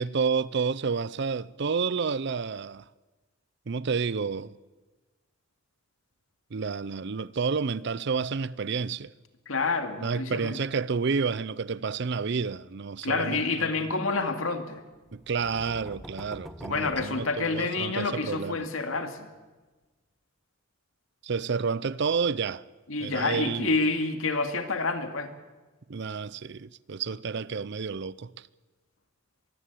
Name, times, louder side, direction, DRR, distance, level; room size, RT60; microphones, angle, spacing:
voice 1, 0.0-2.8 3.7-4.5 6.5-9.1 10.0-13.7 15.1-18.6 21.2-22.6 23.0-23.7 25.9-28.3, right 5 dB, 55° right, 0.5 m, -30 dB
voice 2, 9.5-10.6 13.0-14.8 16.7-19.3 22.9-25.3, left 3 dB, 80° left, 2.3 m, -28 dB
sound 1, 15.0-18.0, equal, ahead, 1.2 m, -45 dB
22.5 x 15.5 x 8.4 m
head